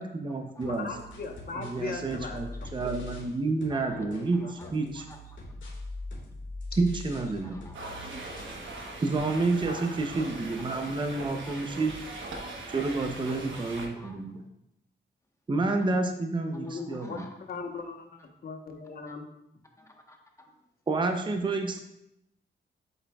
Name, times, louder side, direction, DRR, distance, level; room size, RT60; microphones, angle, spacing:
voice 1, 0.0-0.9 1.5-5.1 6.8-7.6 9.0-11.9 12.7-14.4 15.5-17.2 20.9-21.8, right 3 dB, 25° right, 4 dB, 0.7 m, -29 dB
sound 1, 0.6-3.3 3.6-8.6, left 2 dB, 90° left, 1.9 m, -43 dB
voice 2, 0.7-2.7 3.9-4.7 16.4-17.2 17.5-19.3, left 4 dB, 55° left, 4 dB, 1.1 m, -39 dB
voice 3, 3.7-4.0 4.3-5.4 7.1-7.9 10.6-11.8 13.2-14.5 16.5-17.3 19.0-19.1 19.8-20.5, left 1 dB, 15° left, 2 dB, 1.2 m, -52 dB
sound 2, 7.7-13.9, right 2 dB, 85° right, 1.1 m, -40 dB
8.0 x 7.6 x 2.3 m, 0.82 s
wide cardioid pair, 115°, 19 cm